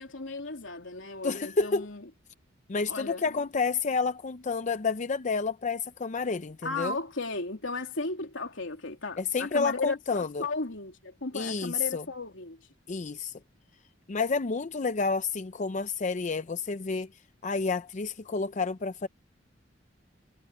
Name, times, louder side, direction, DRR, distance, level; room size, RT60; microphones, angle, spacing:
voice 1, 0.0-2.1 2.9-3.4 6.6-12.6, left 3 dB, 85° left, 3.1 m, -35 dB
voice 2, 1.2-1.9 2.7-6.9 9.2-10.4 11.3-12.0 12.9-13.4 14.1-17.1 17.4-19.1, left 4 dB, 40° left, 0.5 m, -30 dB
head